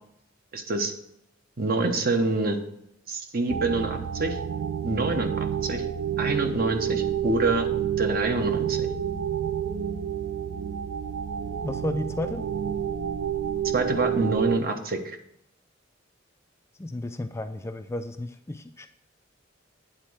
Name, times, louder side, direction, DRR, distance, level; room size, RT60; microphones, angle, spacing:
voice 1, 0.5-0.9 1.6-2.6 3.1-4.4 4.8-5.8 6.2-7.7 8.0-8.9 13.7-15.2, right 3 dB, 50° right, 6 dB, 1.0 m, -26 dB
sound 1, 3.5-14.6, right 8 dB, 75° right, 0.4 m, -29 dB
voice 2, 11.6-12.5 16.8-18.9, left 1 dB, 15° left, 8 dB, 0.3 m, -33 dB
9.1 x 4.0 x 6.2 m, 0.79 s
head